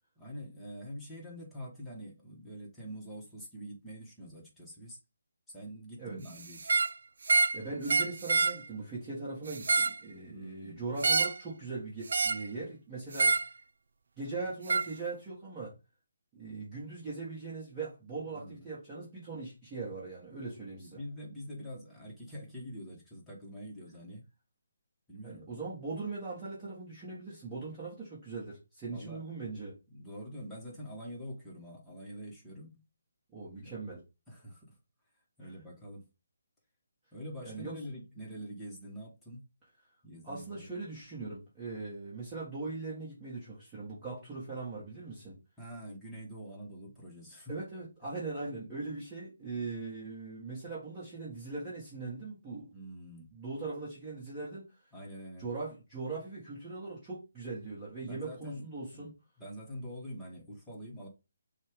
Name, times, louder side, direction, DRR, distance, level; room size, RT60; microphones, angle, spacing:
voice 1, 0.2-5.0 5.5-6.7 10.3-10.9 18.3-18.7 20.8-24.2 25.1-25.5 28.9-29.2 29.9-32.8 33.6-33.7 34.3-34.8 35.4-36.1 37.1-39.4 40.0-40.7 45.6-47.5 52.7-53.4 54.9-55.5 58.0-59.1 59.4-61.1, equal, 5° left, 1.3 m, -45 dB
sound 1, 6.6-6.9 7.3-7.6 7.9-8.6 9.5-10.0 11.0-11.4 12.1-12.5 13.1-13.5 14.7-14.9, right 4 dB, 65° right, 0.4 m, -27 dB
voice 2, 7.5-13.4 14.2-15.7 16.3-21.0 25.2-29.8 33.3-34.0 35.4-35.5 37.4-37.8 40.2-45.4 47.5-52.6 53.3-54.7 55.4-59.1, right 3 dB, 15° right, 1.5 m, -40 dB
6.2 x 2.4 x 3.5 m
hypercardioid pair, 160°, 0 cm